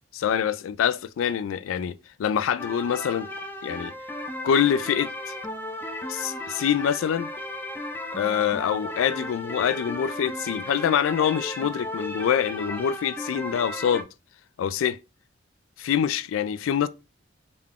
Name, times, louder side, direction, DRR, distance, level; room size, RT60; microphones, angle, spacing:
voice 1, 0.1-3.3 3.6-3.9 4.4-5.1 6.1-7.3 8.1-14.1 14.6-15.0 15.8-16.9, left 8 dB, 85° left, 0.3 m, -25 dB
sound 1, 2.6-14.0, left 1 dB, 10° left, 0.4 m, -35 dB
3.7 x 2.3 x 3.5 m
head